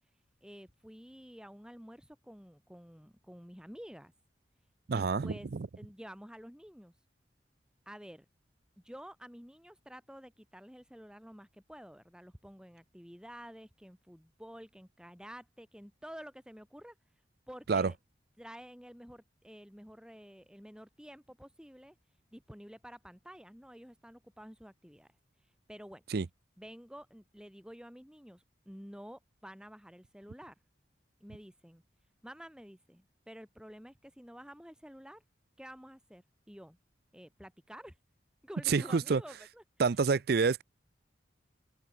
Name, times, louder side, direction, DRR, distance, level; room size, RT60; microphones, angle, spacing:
voice 1, 0.4-4.1 4.9-5.5 5.8-6.9 7.9-8.3 8.8-16.9 17.5-18.0 18.4-22.0 22.3-25.1 25.7-26.0 26.6-30.6 31.2-31.8 32.2-35.2 35.6-36.8 37.1-38.0 38.4-39.6, equal, 5° right, 7.7 m, -50 dB
voice 2, 4.9-5.7 17.7-17.9 26.1-26.3 38.7-39.2 39.8-40.6, right 4 dB, 55° right, 0.5 m, -28 dB
open air
head